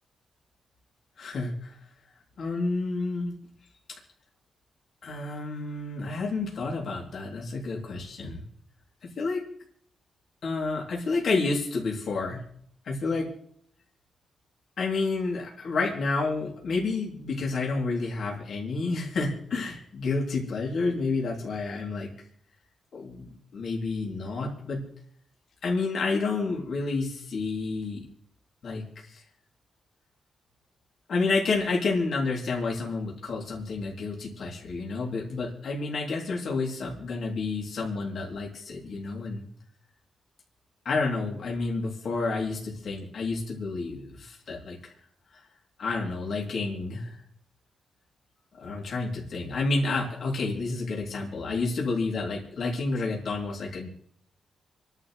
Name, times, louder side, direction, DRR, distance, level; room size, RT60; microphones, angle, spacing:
voice 1, 1.2-1.7 2.4-3.3 5.0-8.4 9.0-9.4 10.4-12.4 12.8-13.3 14.8-22.1 22.9-24.8 25.6-28.0 28.6-29.2 31.1-39.5 40.8-44.9 45.8-47.2 48.6-53.9, left 3 dB, 65° left, -2 dB, 3.1 m, -30 dB
28.5 x 11.0 x 3.3 m, 0.65 s
cardioid pair, 125°, 0 cm